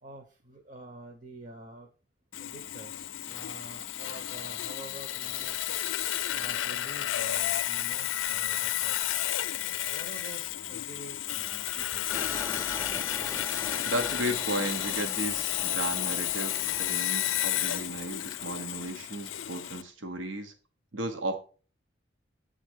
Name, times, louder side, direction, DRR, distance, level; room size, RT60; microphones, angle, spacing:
voice 1, 0.0-1.9 2.4-5.7 6.3-9.2 9.9-12.1 21.1-21.2, right 2 dB, 45° right, 4 dB, 0.9 m, -47 dB
Sawing, 2.3-19.8, left 13 dB, 90° left, 0.4 m, -32 dB
sound 1, 12.1-19.7, left 3 dB, 15° left, 0.4 m, -42 dB
voice 2, 13.8-20.5 20.9-21.4, right 1 dB, 90° right, 6 dB, 1.0 m, -34 dB
8.4 x 3.8 x 6.2 m, 0.39 s
head